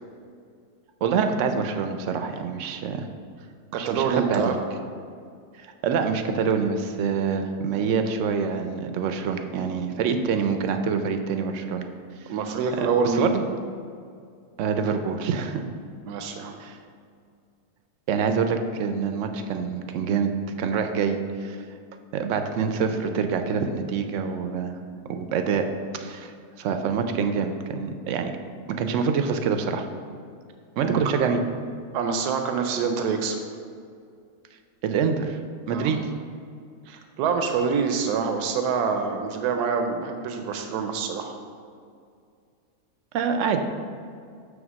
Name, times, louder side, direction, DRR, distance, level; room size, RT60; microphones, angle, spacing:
voice 1, 1.0-3.1 3.8-4.5 5.6-11.9 12.8-13.4 14.6-15.6 16.6-16.8 18.1-20.3 20.6-21.6 22.1-24.7 25.1-25.7 25.9-26.3 26.6-28.3 28.7-29.9 30.8-31.4 34.8-35.4 35.7-36.0 43.1-43.6, right 6 dB, 65° right, 7 dB, 0.8 m, -26 dB
voice 2, 3.7-4.6 12.3-13.3 16.0-16.6 30.8-31.0 31.9-33.4 35.7-36.0 36.9-41.4, right 5 dB, 85° right, 5 dB, 1.1 m, -26 dB
7.1 x 3.4 x 6.1 m, 2.3 s
omnidirectional pair, 1.6 m